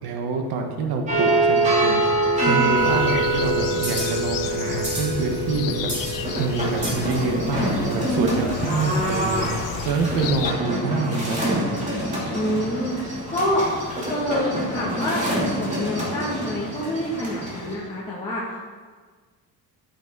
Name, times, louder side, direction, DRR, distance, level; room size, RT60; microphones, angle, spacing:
voice 1, 0.0-2.0 2.5-5.9 6.4-9.5 9.8-11.7, right 4 dB, 85° right, 3 dB, 1.5 m, -26 dB
sound 1, 1.1-17.7, right 1 dB, 20° right, 3.1 m, -25 dB
voice 2, 2.4-2.8 8.0-8.5 12.3-13.7 14.1-18.6, equal, 15° left, -9 dB, 2.2 m, -27 dB
sound 2, 2.8-10.5, left 12 dB, 60° left, 0.5 m, -33 dB
14.5 x 8.3 x 4.0 m, 1.5 s
cardioid pair, 160°, 37 cm